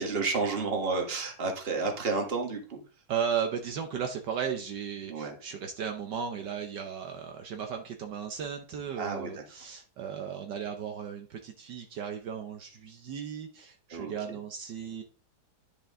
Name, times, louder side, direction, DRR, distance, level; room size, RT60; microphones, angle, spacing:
voice 1, 0.0-2.8 5.1-5.4 9.0-9.3 13.9-14.1, right 4 dB, 35° right, 3 dB, 1.6 m, -31 dB
voice 2, 3.1-15.0, right 7 dB, 70° right, 4 dB, 1.4 m, -35 dB
10.0 x 5.4 x 3.7 m, 0.38 s
omnidirectional pair, 2.0 m